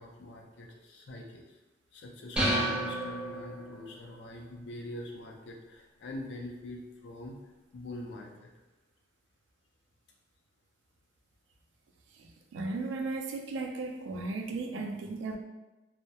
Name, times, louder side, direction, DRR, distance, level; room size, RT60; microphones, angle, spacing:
voice 1, 0.0-1.4 1.9-7.4 7.7-8.5, left 1 dB, 70° left, 0 dB, 0.4 m, -44 dB
sound 1, 2.4-4.0, right 1 dB, 5° right, 0.4 m, -31 dB
voice 2, 12.5-15.4, right 3 dB, 80° right, 3 dB, 0.3 m, -35 dB
2.2 x 2.1 x 2.7 m, 1.1 s
head